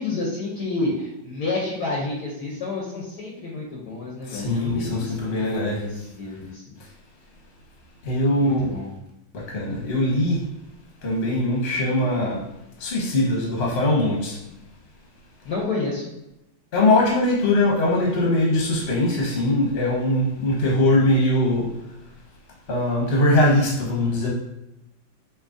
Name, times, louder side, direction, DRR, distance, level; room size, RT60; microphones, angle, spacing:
voice 1, 0.0-6.8 8.3-8.9 15.4-16.0, left 3 dB, 60° left, -3 dB, 1.2 m, -30 dB
voice 2, 4.3-5.8 8.0-8.8 9.3-10.4 11.0-12.4 12.8-14.4 16.7-21.7 22.7-24.3, left 1 dB, 40° left, -3 dB, 1.1 m, -21 dB
5.4 x 2.9 x 2.5 m, 0.88 s
omnidirectional pair, 2.2 m